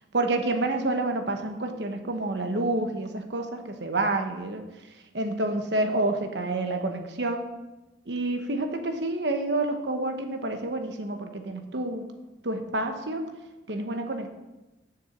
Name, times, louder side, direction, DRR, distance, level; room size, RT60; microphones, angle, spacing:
voice 1, 0.1-4.6 5.1-7.4 8.1-12.0 12.4-13.3 13.7-14.3, right 2 dB, 75° right, 5 dB, 1.1 m, -28 dB
7.1 x 6.9 x 7.3 m, 1.1 s
head